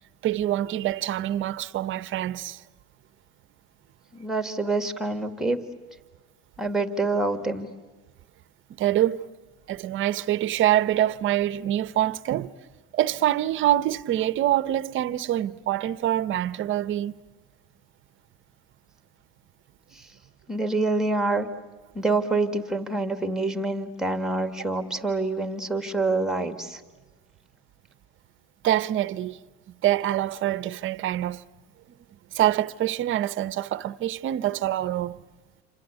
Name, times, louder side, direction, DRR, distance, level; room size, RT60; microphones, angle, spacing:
voice 1, 0.2-2.6 8.8-9.2 9.7-12.5 12.9-17.2 28.6-29.4 29.8-31.4 32.3-35.2, right 13 dB, 40° right, 0.9 m, -25 dB
voice 2, 4.1-5.6 6.6-7.7 19.9-20.1 20.5-21.5 21.9-26.8, right 2 dB, ahead, 1.9 m, -26 dB
28.0 x 26.0 x 8.3 m
supercardioid pair, 115°, 32 cm